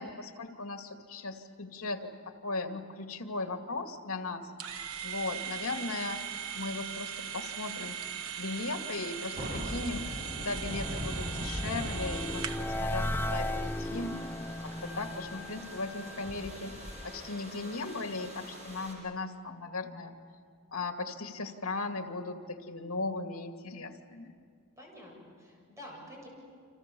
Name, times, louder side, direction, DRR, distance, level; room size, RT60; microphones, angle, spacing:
voice 1, 0.0-6.2 6.5-8.0 8.4-14.2 14.6-20.2 20.7-24.3, left 3 dB, 75° left, 5 dB, 2.3 m, -37 dB
sound 1, 4.6-12.8, right 8 dB, 75° right, 1.1 m, -39 dB
sound 2, 9.4-18.9, equal, 35° right, 6.8 m, -41 dB
sound 3, 9.6-16.8, left 1 dB, 10° left, 0.6 m, -37 dB
voice 2, 24.8-26.3, left 1 dB, 15° right, -1 dB, 7.7 m, -49 dB
30.0 x 26.5 x 7.0 m, 2.1 s
head